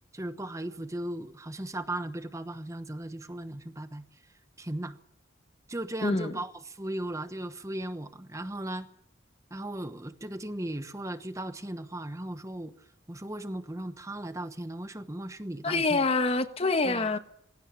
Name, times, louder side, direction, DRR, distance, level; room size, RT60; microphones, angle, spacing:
voice 1, 0.1-4.0 4.6-5.0 5.7-8.9 9.5-12.7 13.1-16.1 16.8-17.2, right 1 dB, 15° right, 1.1 m, -37 dB
voice 2, 6.0-6.3 15.6-17.2, left 3 dB, 30° left, 1.3 m, -26 dB
22.0 x 17.0 x 8.6 m
head